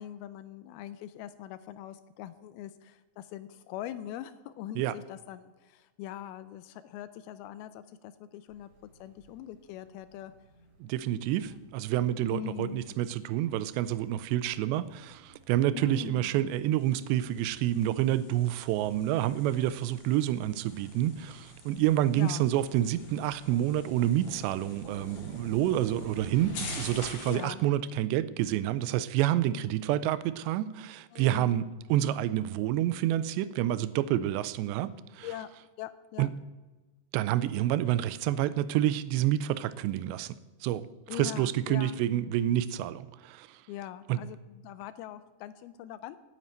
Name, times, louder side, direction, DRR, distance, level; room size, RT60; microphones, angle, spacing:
voice 1, 0.0-8.7 9.0-10.3 12.3-12.8 15.7-16.3 22.1-22.5 27.3-27.6 31.1-31.6 35.2-35.5 35.8-36.3 41.1-42.0 43.7-46.2, left 12 dB, 85° left, 2.2 m, -42 dB
sound 1, 8.5-27.1, right 1 dB, 45° right, 4.8 m, -52 dB
voice 2, 10.8-35.3 36.2-36.3 37.1-43.6 44.1-44.2, right 12 dB, 90° right, 2.8 m, -28 dB
sound 2, 16.8-27.5, left 3 dB, 60° left, 4.7 m, -47 dB
9.6 x 9.3 x 8.9 m
omnidirectional pair, 4.9 m